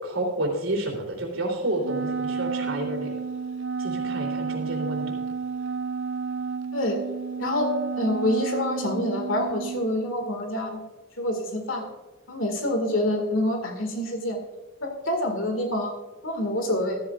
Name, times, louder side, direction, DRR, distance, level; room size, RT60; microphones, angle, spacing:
voice 1, 0.0-3.1 3.8-5.2, right 1 dB, 80° right, 0 dB, 3.4 m, -30 dB
Wind instrument woodwind instrument, 1.8-9.9, right 5 dB, 60° right, 0.4 m, -31 dB
voice 2, 7.4-10.8 11.2-11.8 12.3-14.4 14.8-15.9 16.2-17.0, left 1 dB, 75° left, 4 dB, 2.1 m, -27 dB
13.5 x 13.5 x 2.5 m, 1.2 s
head